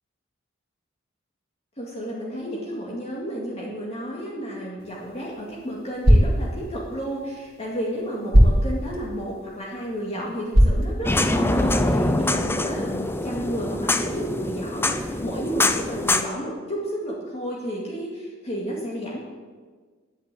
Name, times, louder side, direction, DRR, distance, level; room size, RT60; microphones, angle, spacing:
voice 1, 1.8-19.2, equal, 30° left, -4 dB, 2.2 m, -32 dB
sound 1, 4.8-11.7, equal, 50° right, 2.1 m, -23 dB
sound 2, 11.0-16.2, left 2 dB, 10° left, 0.6 m, -24 dB
10.5 x 9.9 x 8.6 m, 1.5 s
head